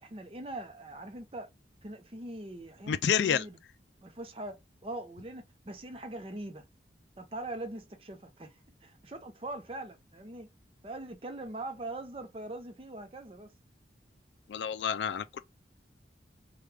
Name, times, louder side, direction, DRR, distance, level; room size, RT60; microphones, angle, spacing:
voice 1, 0.0-1.5 1.8-3.6 4.0-6.7 7.2-10.5 10.8-13.5, right 2 dB, 30° right, 0.6 m, -42 dB
voice 2, 2.9-3.5 14.5-15.4, left 8 dB, 75° left, 0.3 m, -29 dB
3.2 x 2.3 x 3.3 m
head